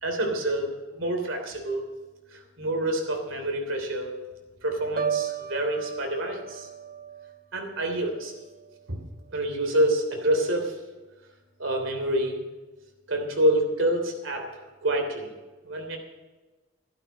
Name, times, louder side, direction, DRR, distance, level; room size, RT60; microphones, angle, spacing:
voice 1, 0.0-1.9 2.3-4.1 4.6-6.7 7.5-8.3 8.9-9.0 9.3-10.8 11.6-12.4 13.1-15.3 15.6-16.0, right 1 dB, 90° right, 3 dB, 3.2 m, -27 dB
Piano, 5.0-8.9 9.3-9.7, right 7 dB, 45° right, 1.2 m, -35 dB
13.5 x 11.5 x 6.2 m, 1.2 s
head